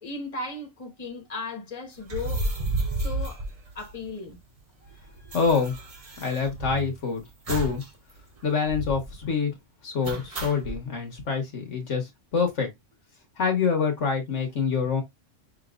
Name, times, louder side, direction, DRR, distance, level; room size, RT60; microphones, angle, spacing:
voice 1, 0.0-2.4 2.9-3.4 3.7-4.4, left 3 dB, 30° left, 1.3 m, -36 dB
sound 1, 2.0-4.3 4.6-4.7 4.9-7.0 7.5-7.9 8.2-8.3 8.6-9.1 10.0-10.8, right 2 dB, 30° right, 0.9 m, -32 dB
voice 2, 5.3-5.7 6.2-7.2 7.5-7.8 8.4-9.5 9.8-12.7 13.4-15.0, left 5 dB, 70° left, 1.6 m, -26 dB
6.0 x 2.9 x 2.4 m
omnidirectional pair, 1.3 m